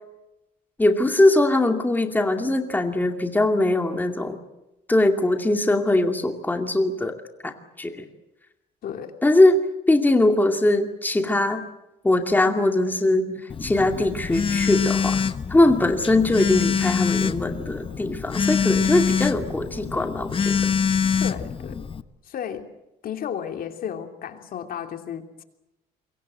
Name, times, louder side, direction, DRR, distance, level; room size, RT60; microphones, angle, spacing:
voice 1, 0.8-4.4 4.9-7.2 7.4-8.1 9.2-9.6 9.9-11.6 12.0-15.2 15.5-20.7, left 2 dB, 10° left, 5 dB, 2.4 m, -21 dB
voice 2, 8.8-9.1 21.2-21.8 22.2-22.7 23.0-25.4, left 8 dB, 60° left, 5 dB, 3.0 m, -33 dB
Telephone, 13.5-22.0, left 6 dB, 30° left, 1.1 m, -25 dB
27.0 x 23.0 x 7.7 m, 0.96 s
cardioid pair, 110°, 17 cm